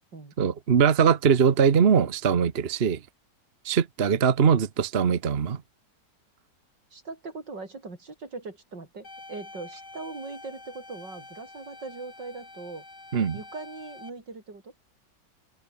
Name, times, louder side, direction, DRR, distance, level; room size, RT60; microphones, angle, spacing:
voice 1, 0.4-3.0 3.6-5.6 13.1-13.4, right 7 dB, 40° right, 1.2 m, -21 dB
voice 2, 6.9-12.8 13.3-14.7, right 3 dB, 80° right, 5.2 m, -40 dB
sound 1, 9.0-14.1, left 2 dB, 65° left, 6.4 m, -46 dB
open air
omnidirectional pair, 1.9 m